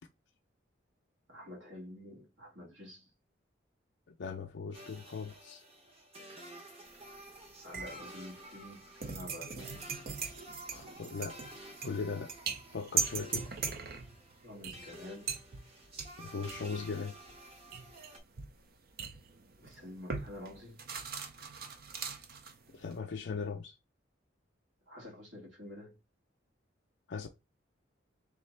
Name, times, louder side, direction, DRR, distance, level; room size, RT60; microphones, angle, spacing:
voice 1, 1.3-3.1 7.1-7.2 7.6-10.0 14.4-15.3 19.6-20.8 24.9-26.0, left 1 dB, 75° right, 1.9 m, -48 dB
voice 2, 4.1-5.6 10.7-11.4 11.8-12.3 12.7-13.5 16.2-17.2 22.7-23.8 27.1-27.3, left 5 dB, 60° left, 0.4 m, -39 dB
sound 1, 4.7-18.2, right 1 dB, 30° right, 0.9 m, -51 dB
sound 2, 6.9-7.4 7.7-23.0, right 5 dB, 50° right, 0.5 m, -40 dB
3.7 x 3.2 x 3.2 m
head